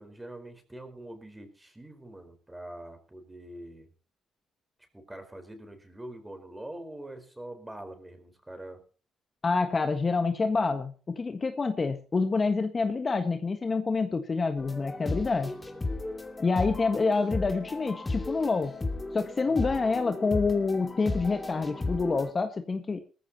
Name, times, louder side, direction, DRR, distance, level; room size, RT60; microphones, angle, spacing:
voice 1, 0.0-3.9 4.9-8.8 19.5-20.0, right 1 dB, 10° right, 7 dB, 4.5 m, -44 dB
voice 2, 9.4-15.5 16.4-18.7 19.1-23.0, left 4 dB, 35° left, 7 dB, 1.5 m, -27 dB
sound 1, 14.6-22.3, left 2 dB, 20° left, 2.7 m, -35 dB
19.0 x 14.5 x 2.9 m, 0.38 s
cardioid pair, 90°, 0 cm